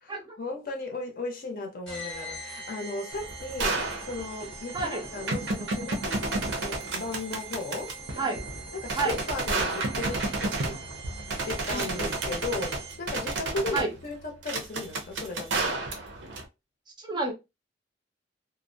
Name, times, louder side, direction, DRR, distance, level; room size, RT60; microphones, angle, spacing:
voice 1, 0.0-7.9 8.7-10.8 11.4-15.8, left 3 dB, 50° left, 0.6 m, -36 dB
sound 1, 1.9-13.2, right 3 dB, 5° left, 0.8 m, -43 dB
sound 2, 3.1-16.4, right 2 dB, 80° right, 0.6 m, -32 dB
voice 2, 4.7-5.1 8.2-8.4 8.9-9.2 11.7-12.1 13.7-13.9 17.0-17.3, right 3 dB, 25° right, 0.6 m, -30 dB
2.4 x 2.0 x 2.6 m
head